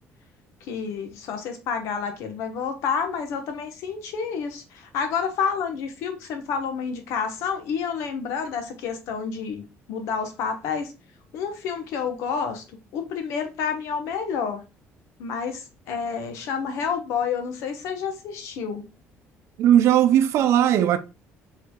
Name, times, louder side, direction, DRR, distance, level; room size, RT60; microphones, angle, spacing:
voice 1, 0.7-10.9 11.3-12.6 12.9-14.6 15.2-18.9, left 6 dB, 80° left, 1.1 m, -29 dB
voice 2, 19.6-21.0, right 11 dB, 65° right, 0.5 m, -18 dB
4.4 x 4.0 x 2.3 m
cardioid pair, 125°, 5 cm